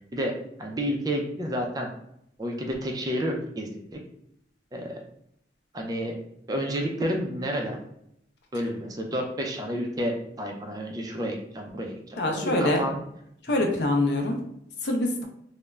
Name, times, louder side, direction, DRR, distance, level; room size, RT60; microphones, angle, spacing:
voice 1, 0.6-1.9 2.4-3.8 4.7-5.0 5.7-6.2 6.5-7.8 8.5-13.0, equal, 20° right, 2 dB, 0.4 m, -30 dB
voice 2, 12.2-12.8 13.4-14.4 14.8-15.2, left 1 dB, 70° left, 3 dB, 0.5 m, -24 dB
2.3 x 2.0 x 3.1 m, 0.75 s
head